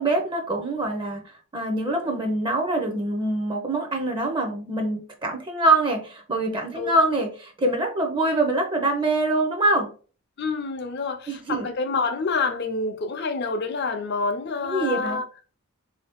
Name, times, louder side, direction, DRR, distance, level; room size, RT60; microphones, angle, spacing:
voice 1, 0.0-9.9 11.3-11.7 14.6-15.2, right 2 dB, 25° right, 0.6 m, -24 dB
voice 2, 10.4-15.3, left 4 dB, 50° left, 0.6 m, -27 dB
3.8 x 2.7 x 3.5 m
head